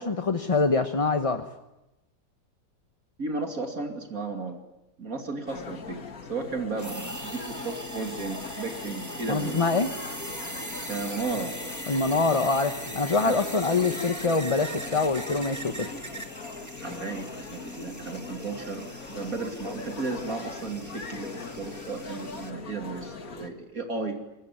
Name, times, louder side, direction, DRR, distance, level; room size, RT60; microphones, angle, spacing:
voice 1, 0.0-1.4 9.3-9.9 11.9-15.9, left 3 dB, 25° left, 7 dB, 1.0 m, -25 dB
voice 2, 3.2-4.6 5.0-6.0 6.3-9.6 10.9-11.5 13.2-13.4 16.8-24.2, right 3 dB, 60° right, 5 dB, 3.1 m, -34 dB
sound 1, 5.5-23.5, left 4 dB, 60° left, 2.4 m, -40 dB
sound 2, 6.8-22.5, right 1 dB, 10° right, 1.7 m, -41 dB
25.5 x 21.0 x 9.7 m, 0.95 s
omnidirectional pair, 1.7 m